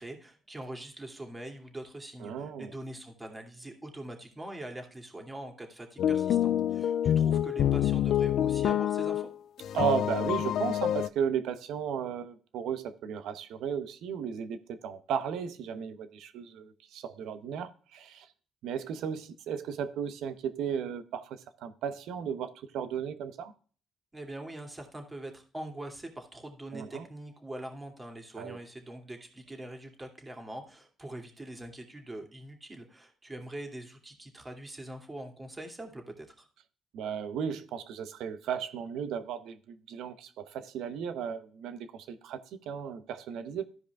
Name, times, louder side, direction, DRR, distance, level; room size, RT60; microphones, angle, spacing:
voice 1, 0.0-9.3 24.1-36.5, right 1 dB, 20° right, 3 dB, 2.5 m, -43 dB
voice 2, 2.2-2.7 9.7-18.3 18.6-23.5 26.7-27.1 28.4-28.6 36.9-42.4 42.7-43.6, right 7 dB, 85° right, 11 dB, 0.9 m, -35 dB
sound 1, 6.0-9.3 9.6-11.1, left 10 dB, 75° left, 0.4 m, -27 dB
14.0 x 5.0 x 3.5 m, 0.41 s
cardioid pair, 90°, 0 cm